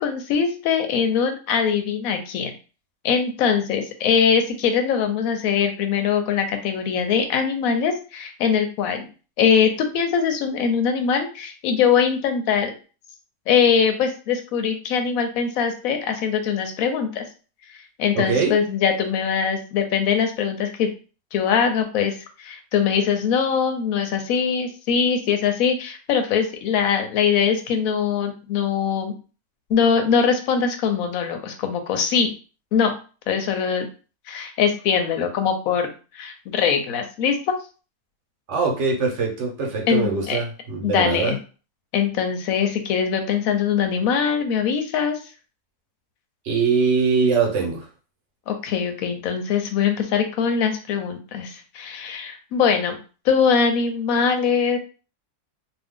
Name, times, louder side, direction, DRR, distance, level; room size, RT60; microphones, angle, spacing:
voice 1, 0.0-2.5 3.0-9.1 9.4-12.7 13.5-17.2 17.7-20.9 21.3-29.1 29.7-32.3 32.7-32.9 33.3-33.9 34.3-37.4 39.9-40.4 40.8-41.4 41.9-45.2 48.5-53.0 53.2-54.8, left 7 dB, 75° left, 6 dB, 1.0 m, -22 dB
voice 2, 18.1-18.5 38.5-41.4 46.4-47.9, right 5 dB, 55° right, 1 dB, 1.0 m, -22 dB
2.6 x 2.4 x 3.5 m, 0.36 s
omnidirectional pair, 1.6 m